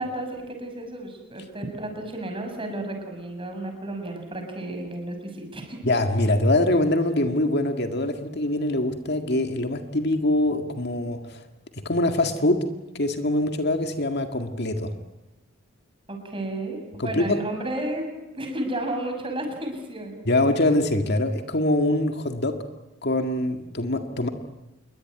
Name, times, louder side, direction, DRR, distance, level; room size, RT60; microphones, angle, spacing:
voice 1, 0.0-5.8 16.1-20.2, right 1 dB, 25° right, 4 dB, 6.5 m, -32 dB
voice 2, 5.8-11.4 11.9-12.6 12.9-14.9 17.0-17.4 20.3-22.6 23.0-24.3, left 1 dB, 50° left, 6 dB, 2.0 m, -23 dB
27.5 x 22.5 x 9.5 m, 0.99 s
head